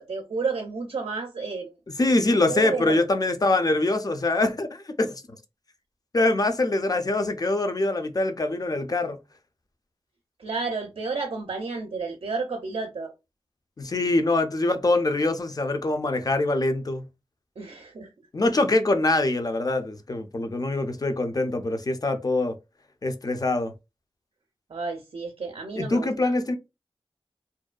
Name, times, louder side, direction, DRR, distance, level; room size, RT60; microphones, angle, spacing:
voice 1, 0.0-1.8 2.5-3.0 10.4-13.1 17.6-18.3 24.7-26.3, right 4 dB, 70° right, 0.5 m, -31 dB
voice 2, 2.0-5.2 6.1-9.2 13.8-17.0 18.3-22.6 23.0-23.7 25.8-26.6, left 2 dB, 40° left, 0.5 m, -24 dB
2.6 x 2.2 x 2.3 m
wide cardioid pair, 50°, 10 cm